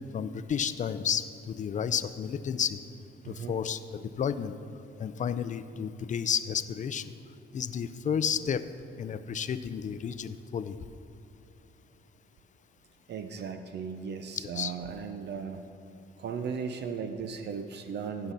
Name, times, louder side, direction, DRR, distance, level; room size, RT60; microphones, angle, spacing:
voice 1, 0.1-2.8 3.3-4.5 5.0-7.1 7.5-8.7 9.0-10.8 14.4-14.7, left 7 dB, 40° left, 12 dB, 0.5 m, -31 dB
voice 2, 13.1-15.6 16.2-18.3, right 6 dB, 60° right, 7 dB, 0.6 m, -36 dB
15.5 x 5.8 x 4.0 m, 2.8 s
cardioid pair, 90°, 20 cm